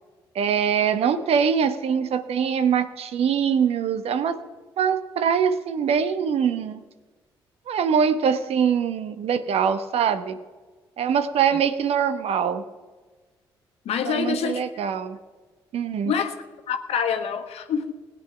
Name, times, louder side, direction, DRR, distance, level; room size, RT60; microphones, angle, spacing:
voice 1, 0.3-4.4 4.8-6.8 7.7-10.4 11.0-12.6 14.0-15.2 15.7-16.1, right 7 dB, 65° right, 12 dB, 1.0 m, -23 dB
voice 2, 13.8-14.6 16.0-17.9, left 7 dB, 70° left, 6 dB, 1.2 m, -26 dB
17.5 x 8.9 x 5.6 m, 1.4 s
hypercardioid pair, 50°, 11 cm